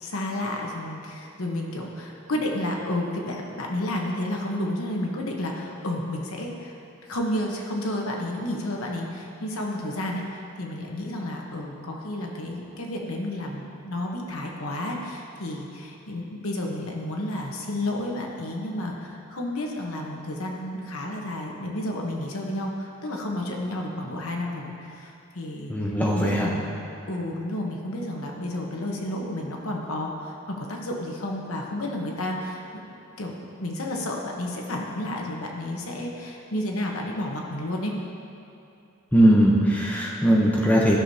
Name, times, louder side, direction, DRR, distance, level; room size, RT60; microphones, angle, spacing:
voice 1, 0.0-6.8 7.0-25.7 26.1-26.8 27.1-32.8 33.2-37.9, left 1 dB, 85° left, 0 dB, 1.1 m, -31 dB
voice 2, 25.7-26.5 39.1-41.0, equal, 10° left, -4 dB, 0.8 m, -19 dB
13.5 x 6.2 x 2.8 m, 2.8 s
head